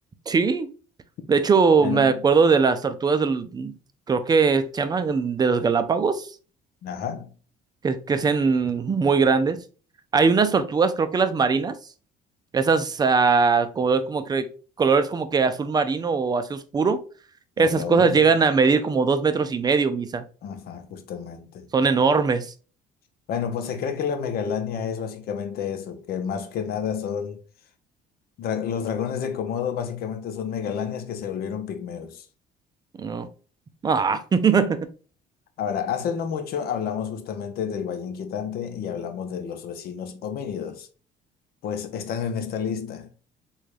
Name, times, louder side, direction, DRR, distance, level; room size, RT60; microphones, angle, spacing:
voice 1, 0.3-0.7 1.3-3.7 4.1-6.3 7.8-9.6 10.1-11.7 12.5-14.5 14.8-17.0 17.6-20.2 21.7-22.5 33.0-33.3 33.8-34.8, right 5 dB, 25° right, 0.4 m, -21 dB
voice 2, 1.8-2.2 6.8-7.3 17.6-18.3 20.4-21.7 23.3-27.4 28.4-32.3 35.6-40.9 41.6-43.1, left 7 dB, 65° left, 0.7 m, -30 dB
3.6 x 2.3 x 3.2 m
cardioid pair, 110°, 17 cm